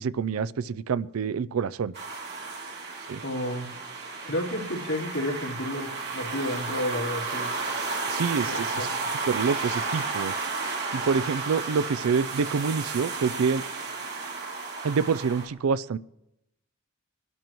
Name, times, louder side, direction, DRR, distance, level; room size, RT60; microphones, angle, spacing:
voice 1, 0.0-1.9 3.1-3.2 8.1-10.3 10.9-13.7 14.8-16.0, right 5 dB, 80° right, 18 dB, 0.4 m, -27 dB
sound 1, 1.9-15.5, right 4 dB, 55° right, 2.7 m, -33 dB
voice 2, 3.2-3.7 4.2-7.5 8.4-8.9, left 1 dB, 80° left, -3 dB, 3.7 m, -31 dB
23.5 x 12.5 x 3.1 m, 0.86 s
head